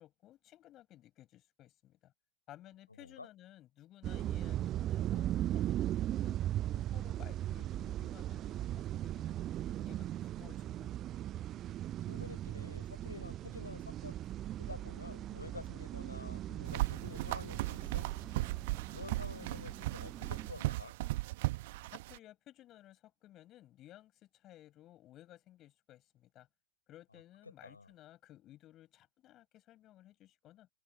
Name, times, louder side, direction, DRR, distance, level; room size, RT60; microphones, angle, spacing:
voice 1, 0.0-2.1 2.5-6.4 6.7-10.9 21.9-26.5 26.9-30.7, left 14 dB, 35° left, 7.2 m, -58 dB
sound 1, 4.0-20.5, right 12 dB, 30° right, 0.7 m, -38 dB
voice 2, 12.1-14.2 14.6-18.1 18.9-20.9 27.6-27.9, left 3 dB, 80° left, 6.0 m, -49 dB
sound 2, 16.7-22.2, right 20 dB, 50° right, 1.5 m, -37 dB
figure-of-eight pair, 90°, 0 cm